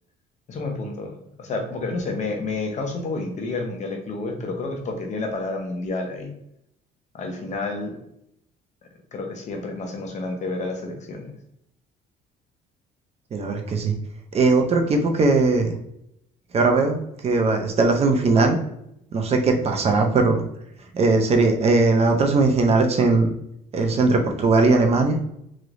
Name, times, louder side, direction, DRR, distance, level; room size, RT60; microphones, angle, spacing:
voice 1, 0.5-6.3 7.1-8.0 9.1-11.3, left 3 dB, 45° left, 2 dB, 0.8 m, -30 dB
voice 2, 13.3-13.9 14.3-15.7 16.5-17.0 17.2-18.6 19.1-20.4 20.9-23.3 23.7-25.2, right 3 dB, 40° right, 4 dB, 0.5 m, -19 dB
3.1 x 2.9 x 2.5 m, 0.77 s
cardioid pair, 110°, 17 cm